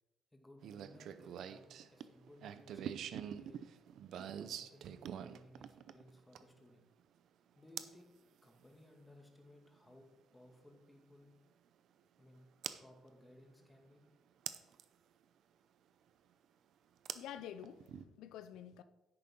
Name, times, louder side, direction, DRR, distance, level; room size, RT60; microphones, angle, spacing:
voice 1, 0.3-3.6 4.4-6.8 7.6-8.1 8.4-11.3 12.2-12.5 12.8-14.0, left 1 dB, 15° left, 2.2 m, -61 dB
sound 1, 0.6-6.6 7.8-8.0 9.9-10.0 12.6-12.8 14.5-14.8 17.0-18.0, right 9 dB, 75° right, 0.6 m, -45 dB
voice 2, 17.1-18.8, left 10 dB, 90° left, 0.4 m, -49 dB
10.5 x 8.6 x 3.8 m
cardioid pair, 90°, 0 cm